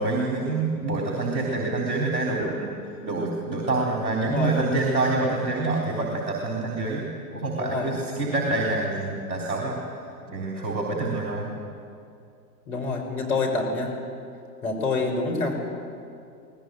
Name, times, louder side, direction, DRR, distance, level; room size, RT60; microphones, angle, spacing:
voice 1, 0.0-2.7 3.0-9.8 10.3-11.5, right 2 dB, 60° right, -1 dB, 3.9 m, -26 dB
voice 2, 4.2-4.5 7.6-7.9 12.7-13.9 14.6-15.5, left 3 dB, 60° left, 2 dB, 5.6 m, -27 dB
24.0 x 18.5 x 8.9 m, 2.4 s
figure-of-eight pair, 105°, 48 cm